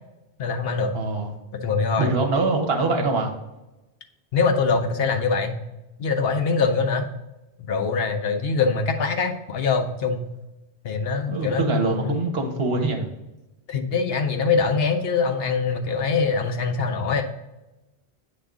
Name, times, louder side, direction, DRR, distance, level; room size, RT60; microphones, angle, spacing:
voice 1, 0.4-0.9 1.5-2.1 4.3-5.5 6.0-7.1 7.6-10.2 10.8-12.2 13.7-17.2, left 4 dB, 70° left, 6 dB, 0.9 m, -23 dB
voice 2, 0.9-1.4 2.0-3.3 11.3-13.1, right 3 dB, 75° right, 3 dB, 1.2 m, -24 dB
7.6 x 3.5 x 3.7 m, 0.99 s
omnidirectional pair, 1.1 m